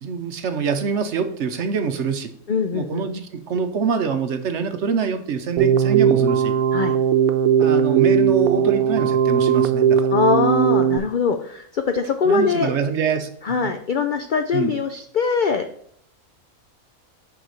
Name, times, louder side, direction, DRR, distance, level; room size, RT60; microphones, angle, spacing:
voice 1, 0.0-2.3 2.7-6.5 7.6-10.1 12.2-13.3 14.5-14.7, right 6 dB, 60° right, 8 dB, 1.0 m, -25 dB
voice 2, 2.5-3.1 6.7-6.9 10.1-12.7 13.4-15.6, left 5 dB, 70° left, 7 dB, 0.4 m, -22 dB
Keyboard (musical), 5.6-11.0, right 8 dB, 90° right, 1.1 m, -18 dB
6.6 x 5.0 x 4.7 m, 0.68 s
omnidirectional pair, 1.5 m